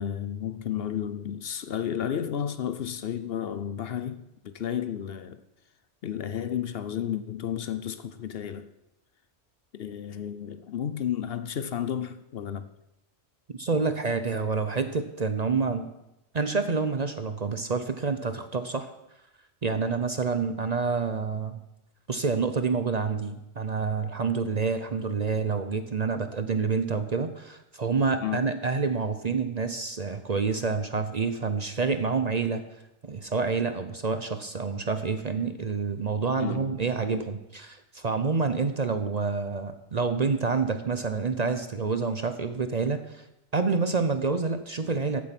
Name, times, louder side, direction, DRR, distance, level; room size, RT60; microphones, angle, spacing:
voice 1, 0.0-5.4 6.0-8.7 9.7-12.7 28.2-28.5 36.4-36.7, left 9 dB, 60° left, 0.8 m, -32 dB
voice 2, 13.5-15.9 16.3-18.9 19.6-21.6 22.1-32.7 33.0-43.2 43.5-45.2, right 4 dB, 40° right, 0.7 m, -28 dB
14.5 x 7.5 x 5.9 m
omnidirectional pair, 1.2 m